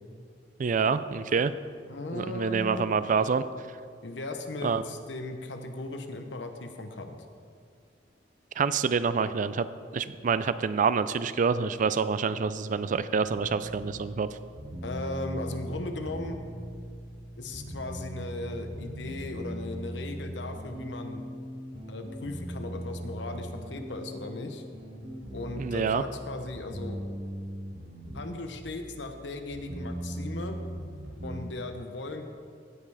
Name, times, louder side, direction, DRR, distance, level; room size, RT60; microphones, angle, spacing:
voice 1, 0.6-1.5 2.1-3.4 4.6-4.8 8.6-9.7 9.9-14.3 25.6-26.0, right 5 dB, 45° right, 14 dB, 0.4 m, -27 dB
voice 2, 1.9-2.9 4.0-7.2 14.8-16.4 17.4-21.2 21.9-24.6 25.3-27.0 28.1-30.6 31.2-32.3, left 2 dB, 70° left, 6 dB, 1.0 m, -37 dB
sound 1, 12.7-31.4, equal, 60° right, 2.1 m, -40 dB
16.5 x 5.5 x 4.9 m, 2.2 s
head